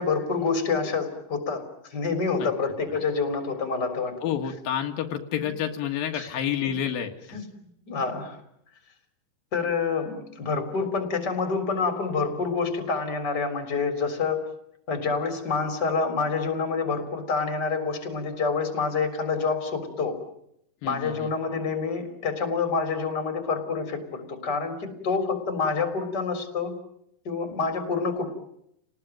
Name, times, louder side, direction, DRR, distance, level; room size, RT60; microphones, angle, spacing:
voice 1, 0.0-4.2 5.4-5.5 6.1-6.3 6.6-6.7 7.3-7.4 7.9-8.4 9.5-14.4 14.9-20.2 20.8-26.8 27.2-28.3, left 4 dB, 30° left, 7 dB, 4.1 m, -27 dB
voice 2, 4.2-7.1 20.8-21.3, left 9 dB, 85° left, 4 dB, 3.4 m, -29 dB
29.5 x 19.5 x 9.2 m, 0.79 s
omnidirectional pair, 4.0 m